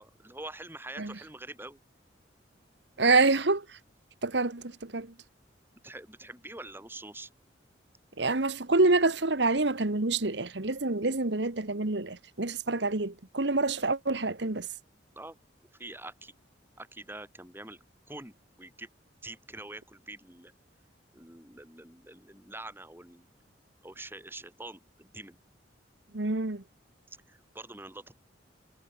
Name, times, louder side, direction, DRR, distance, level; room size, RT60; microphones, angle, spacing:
voice 1, 0.0-1.8 5.8-7.3 15.2-15.4 15.8-16.3 16.8-17.8 18.1-18.9 19.2-20.5 21.1-23.3 23.8-25.4 27.1-28.2, right 2 dB, 10° right, 7.9 m, -45 dB
voice 2, 3.0-3.6 4.2-5.1 8.2-14.7 26.1-26.6, right 3 dB, 70° right, 1.5 m, -27 dB
head